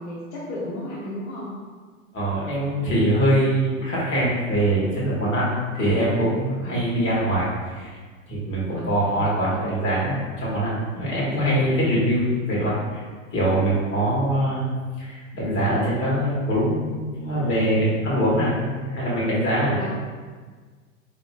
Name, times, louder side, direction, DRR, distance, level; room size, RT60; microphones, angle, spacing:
voice 1, 0.0-1.5 6.6-7.0 8.7-9.2 19.8-19.9, left 1 dB, 55° left, -7 dB, 0.9 m, -34 dB
voice 2, 2.1-8.0 8.3-13.0 13.3-14.6 15.0-19.8, right 1 dB, 30° left, -6 dB, 1.4 m, -23 dB
4.1 x 2.9 x 2.4 m, 1.5 s
hypercardioid pair, 100°, 41 cm